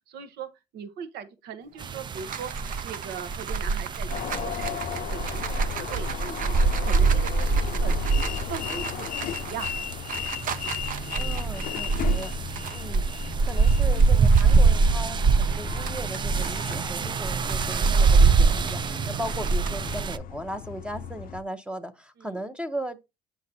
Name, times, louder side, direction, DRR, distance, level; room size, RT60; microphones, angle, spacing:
voice 1, 0.1-0.5 0.7-2.5 2.8-6.6 6.8-7.9 8.4-9.7 19.3-19.5 22.2-22.4, right 7 dB, 75° right, 1.0 m, -39 dB
agitando rocas en un vaso, 1.7-14.7 15.1-20.0, right 8 dB, 55° right, 0.7 m, -39 dB
sound 1, 1.8-20.2, right 4 dB, 25° right, 0.4 m, -24 dB
sound 2, 4.1-21.4, left 9 dB, 55° left, 0.5 m, -36 dB
voice 2, 11.1-12.3 12.7-13.0 13.4-23.0, right 1 dB, 5° right, 0.8 m, -37 dB
8.2 x 5.9 x 2.7 m
cardioid pair, 110°, 17 cm